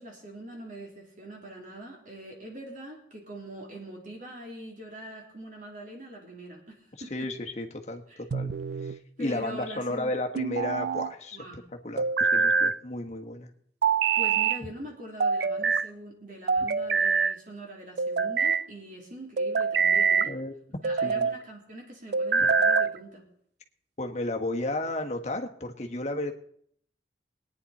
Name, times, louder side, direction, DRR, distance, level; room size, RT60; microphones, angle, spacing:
voice 1, 0.0-7.1 8.1-8.2 9.2-10.1 11.3-11.6 12.3-12.5 14.1-20.3 20.8-23.3, right 1 dB, 45° right, 0 dB, 3.1 m, -43 dB
voice 2, 7.1-8.0 8.3-8.5 8.8-11.4 11.8-13.5 20.3-20.6 21.0-21.2 22.4-22.5 24.0-26.3, left 1 dB, 35° left, 3 dB, 1.3 m, -33 dB
sound 1, 8.3-9.0 10.3-11.1 12.0-12.8 13.8-14.6 15.2-15.9 16.5-17.3 18.0-18.6 19.4-20.3 20.8-21.4 22.1-23.0, right 5 dB, 60° right, 0.4 m, -25 dB
22.0 x 9.7 x 4.2 m, 0.66 s
head